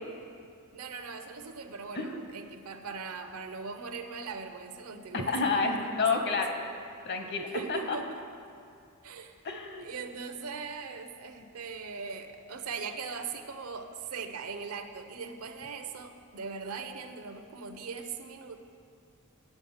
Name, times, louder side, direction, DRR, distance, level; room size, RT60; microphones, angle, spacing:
voice 1, 0.7-6.2 7.5-8.2 9.0-9.4 9.8-18.6, right 5 dB, 75° right, 7 dB, 0.7 m, -40 dB
voice 2, 5.1-6.5 7.0-8.0 9.4-9.9, left 4 dB, 50° left, 4 dB, 0.9 m, -29 dB
9.1 x 7.7 x 5.6 m, 2.4 s
head